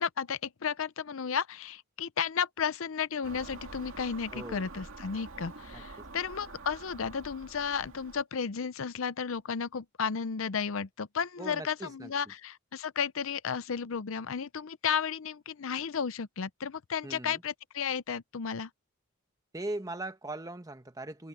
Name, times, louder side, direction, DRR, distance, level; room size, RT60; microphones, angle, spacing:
voice 1, 0.0-18.7, left 6 dB, 65° left, 0.6 m, -33 dB
Car passing by / Engine, 3.2-8.2, right 3 dB, 65° right, 2.7 m, -47 dB
voice 2, 4.3-4.7 5.7-5.8 11.4-12.1 17.0-17.4 19.5-21.3, right 2 dB, 15° right, 1.2 m, -39 dB
head